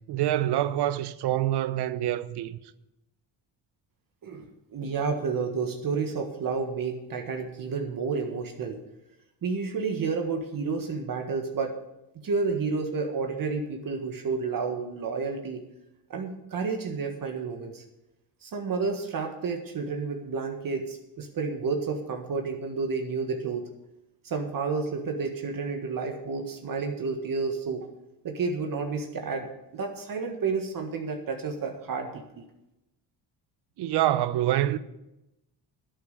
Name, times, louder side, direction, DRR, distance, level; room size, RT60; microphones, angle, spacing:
voice 1, 0.1-2.6 33.8-34.8, right 13 dB, 70° right, 0.8 m, -26 dB
voice 2, 4.2-8.8 9.4-11.8 12.2-15.6 16.1-17.8 18.4-23.7 24.2-27.9 28.2-32.4, right 4 dB, 50° right, 1.7 m, -30 dB
11.0 x 8.9 x 6.6 m
cardioid pair, 95°, 42 cm